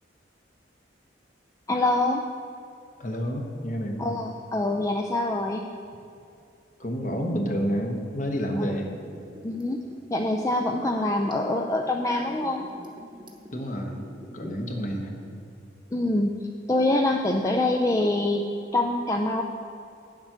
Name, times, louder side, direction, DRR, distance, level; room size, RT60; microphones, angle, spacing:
voice 1, 1.7-2.2 4.0-5.6 8.6-8.9 9.4-9.8 10.1-12.7 15.9-16.3 16.7-18.4 18.7-19.4, left 2 dB, 15° left, 2 dB, 0.3 m, -25 dB
voice 2, 3.0-4.0 6.8-8.9 13.5-14.0 14.3-15.2, equal, 40° left, 2 dB, 1.1 m, -29 dB
Liquid, 8.9-14.7 15.0-15.1, equal, 25° right, 1.0 m, -45 dB
8.9 x 7.4 x 5.9 m, 2.5 s
head